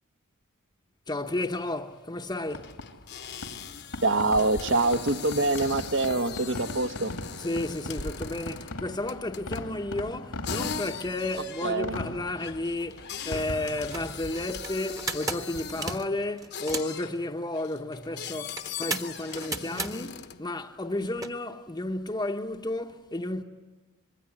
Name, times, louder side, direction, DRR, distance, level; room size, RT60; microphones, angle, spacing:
voice 1, 1.1-2.8 7.3-23.4, left 2 dB, 20° left, 0.9 m, -32 dB
sound 1, 1.5-1.6 1.8-2.0 2.5-8.8 9.1-9.8 10.4-16.2 16.5-17.2 17.5-20.5, left 8 dB, 50° left, 1.1 m, -40 dB
Fireworks, 2.5-16.0, left 1 dB, 90° left, 2.6 m, -40 dB
voice 2, 4.0-7.1 11.6-11.9, right 2 dB, 60° right, 1.2 m, -25 dB
sound 2, 12.8-12.9 13.2-13.5 13.8-17.0 18.6-19.9 21.2-21.3, right 3 dB, 15° right, 1.2 m, -35 dB
25.5 x 22.0 x 9.9 m
head